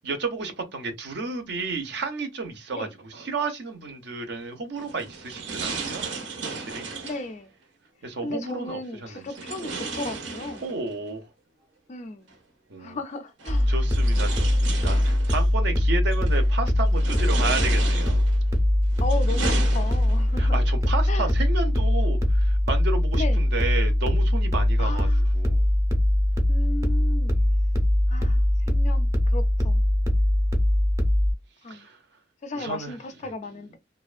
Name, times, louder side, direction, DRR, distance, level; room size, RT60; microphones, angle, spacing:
voice 1, 0.0-6.1 6.4-6.9 8.0-9.2 10.6-11.3 12.7-13.0 13.7-18.2 20.4-25.7 27.3-27.5 31.7-32.0 32.5-33.0, right 3 dB, 60° right, 0.6 m, -32 dB
sound 1, 4.7-7.3 9.3-11.0 12.3-12.4 13.4-15.5 16.1-16.5 16.9-18.4 18.9-20.3, right 4 dB, 90° right, 0.8 m, -34 dB
voice 2, 7.0-7.5 8.2-10.6 11.9-12.3 12.8-13.7 19.0-20.6 21.1-21.3 23.2-23.4 24.8-25.2 26.5-27.4 28.1-29.8 31.6-31.9 32.4-33.8, left 2 dB, 40° left, 0.3 m, -35 dB
sound 2, 13.5-31.3, left 1 dB, 15° right, 0.5 m, -22 dB
2.5 x 2.1 x 2.4 m
head